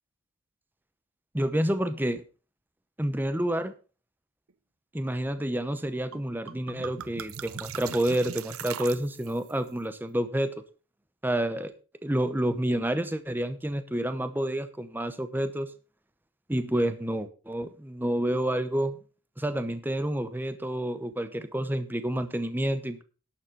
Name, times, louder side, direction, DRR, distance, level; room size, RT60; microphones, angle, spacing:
voice 1, 1.3-2.2 3.0-3.8 4.9-10.6 11.2-11.7 12.0-15.7 16.5-19.0 19.4-23.0, right 1 dB, 10° right, 11 dB, 0.8 m, -29 dB
sound 1, 6.1-6.2 6.5-9.5, right 8 dB, 85° right, 0.6 m, -40 dB
11.5 x 7.2 x 5.5 m, 0.36 s
head